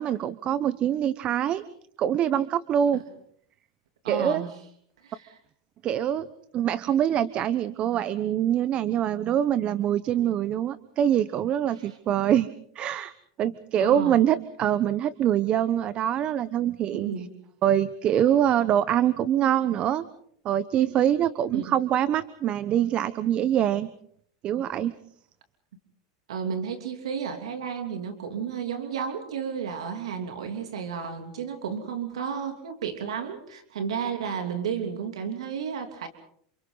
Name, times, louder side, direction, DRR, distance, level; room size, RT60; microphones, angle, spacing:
voice 1, 0.0-1.6 2.0-3.0 4.1-4.4 5.8-6.3 6.5-12.5 12.7-13.1 13.4-17.1 17.6-20.0 20.4-23.9 24.4-24.9, right 10 dB, 40° right, 15 dB, 1.0 m, -24 dB
voice 2, 4.0-4.5 5.0-5.4 11.7-12.0 13.8-14.2 16.9-17.3 21.5-21.7 26.3-36.1, right 7 dB, 90° right, 5 dB, 3.1 m, -32 dB
29.5 x 28.0 x 4.1 m, 0.63 s
supercardioid pair, 115°, 3 cm